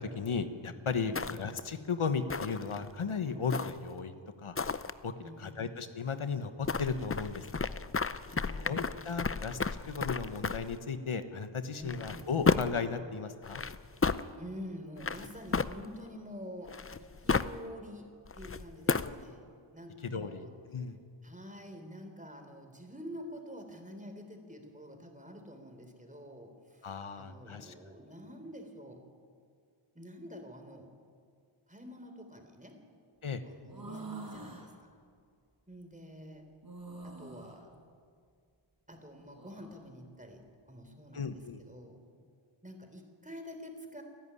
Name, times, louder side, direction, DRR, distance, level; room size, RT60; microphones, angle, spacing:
voice 1, 0.0-4.6 5.0-7.7 8.6-9.6 9.9-13.6 20.0-21.0 26.8-27.7 33.2-33.4 41.1-41.6, left 5 dB, 80° left, 9 dB, 1.3 m, -35 dB
sound 1, 1.1-1.7 2.3-2.9 3.5-4.0 4.6-4.9 6.6-10.8 11.8-12.9 13.4-14.2 15.0-16.1 16.7-17.6 18.3-19.2, left 4 dB, 25° left, 0.6 m, -33 dB
voice 2, 5.2-5.5 8.3-8.7 11.8-12.0 14.4-16.7 17.0-18.1 18.4-19.4 19.7-20.5 21.2-29.0 30.0-30.9 31.7-32.8 33.4-34.9 35.7-36.4 37.0-37.7 38.9-40.4 40.7-41.3 41.7-42.0 42.6-44.0, equal, 15° right, 5 dB, 3.6 m, -47 dB
sound 2, 33.6-34.7 36.6-37.6 39.1-39.7, right 3 dB, 45° right, 4.9 m, -45 dB
29.5 x 11.0 x 9.9 m, 2.2 s
wide cardioid pair, 70°, 49 cm